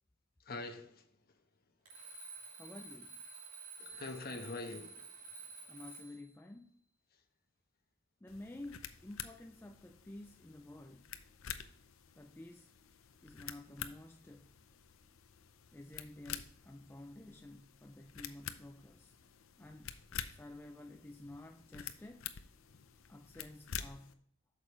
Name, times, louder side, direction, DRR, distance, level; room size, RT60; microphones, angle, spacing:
voice 1, 0.4-1.1 3.8-5.5, left 2 dB, 45° left, 1.1 m, -45 dB
Alarm, 1.9-6.3, right 4 dB, 85° right, 2.8 m, -51 dB
voice 2, 2.6-3.2 5.7-6.7 8.2-11.1 12.2-12.7 13.2-14.5 15.7-19.1 19.6-20.0 20.3-22.3 23.1-24.3, left 1 dB, 10° left, 0.3 m, -51 dB
sound 1, 8.3-24.1, left 9 dB, 75° left, 0.6 m, -49 dB
8.6 x 6.3 x 3.1 m
head